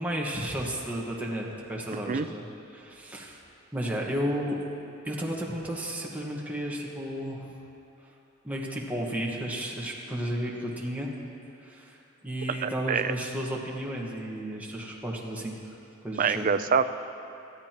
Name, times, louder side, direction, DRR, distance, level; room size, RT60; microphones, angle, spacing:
voice 1, 0.0-2.4 2.7-3.4 3.7-4.6 5.0-7.5 8.4-11.1 11.6-12.0 12.2-15.8 16.0-16.5, equal, 10° right, -3 dB, 1.5 m, -33 dB
voice 2, 1.9-2.3 12.6-13.1 16.2-16.8, right 6 dB, 40° right, 11 dB, 0.4 m, -26 dB
19.5 x 13.0 x 3.0 m, 2.8 s
head